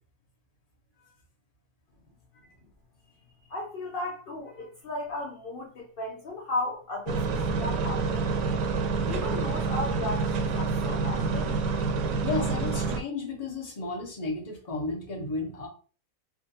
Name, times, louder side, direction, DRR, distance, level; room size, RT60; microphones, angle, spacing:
voice 1, 3.5-7.3 7.6-8.3 9.0-11.6, left 2 dB, 70° left, -2 dB, 0.5 m, -35 dB
sound 1, 7.1-13.0, right 4 dB, 75° right, 1.1 m, -28 dB
voice 2, 12.2-15.7, left 3 dB, 30° left, -1 dB, 0.7 m, -33 dB
3.5 x 2.5 x 2.7 m, 0.39 s
omnidirectional pair, 1.8 m